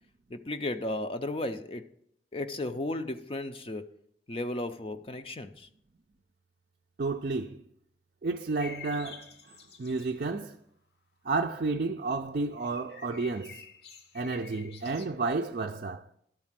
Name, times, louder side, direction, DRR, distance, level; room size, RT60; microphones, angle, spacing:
voice 1, 0.3-1.9 2.3-3.9 4.3-5.7, left 2 dB, 30° left, 0.5 m, -34 dB
voice 2, 7.0-7.6 8.2-10.6 11.2-13.6 14.1-16.0, right 3 dB, 50° right, 0.4 m, -31 dB
sound 1, 8.6-10.2 12.6-15.1, left 6 dB, 60° left, 0.9 m, -48 dB
12.0 x 4.3 x 7.4 m
head